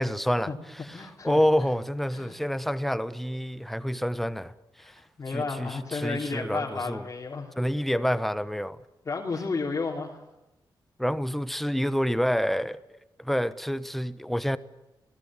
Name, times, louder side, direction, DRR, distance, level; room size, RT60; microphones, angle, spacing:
voice 1, 0.0-5.0 5.3-7.1 7.6-8.8 11.0-12.8 13.2-14.6, equal, ahead, 1.1 m, -28 dB
voice 2, 0.9-1.4 2.1-2.4 4.8-4.9 5.2-7.5 9.0-10.2, left 4 dB, 35° left, 3.2 m, -32 dB
28.0 x 18.5 x 8.8 m
wide cardioid pair, 145°, 8 cm